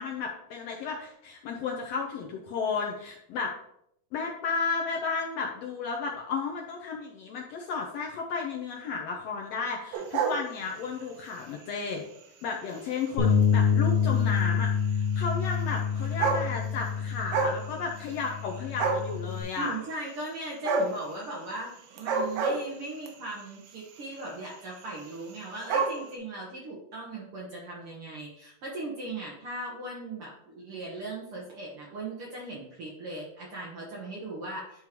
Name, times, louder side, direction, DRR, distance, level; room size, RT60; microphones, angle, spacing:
voice 1, 0.0-3.5 4.1-12.0 12.4-19.7, left 5 dB, 85° left, 0 dB, 1.4 m, -33 dB
sound 1, 9.9-11.1 11.7-11.9 12.8-12.9 13.0-13.1 13.4-13.5 14.7-14.8 15.7-15.8 16.0-16.9 17.2-17.6 17.9-18.5 18.8-19.2 20.6-21.0 21.9-23.1 24.0-24.3 24.5-24.6 24.8-24.9 25.1-26.0, right 4 dB, 90° right, 2.5 m, -28 dB
Bass guitar, 13.2-19.4, left 6 dB, 40° left, 0.9 m, -27 dB
voice 2, 19.6-34.9, right 2 dB, 65° right, -3 dB, 1.4 m, -38 dB
11.0 x 3.7 x 3.0 m, 0.75 s
omnidirectional pair, 3.9 m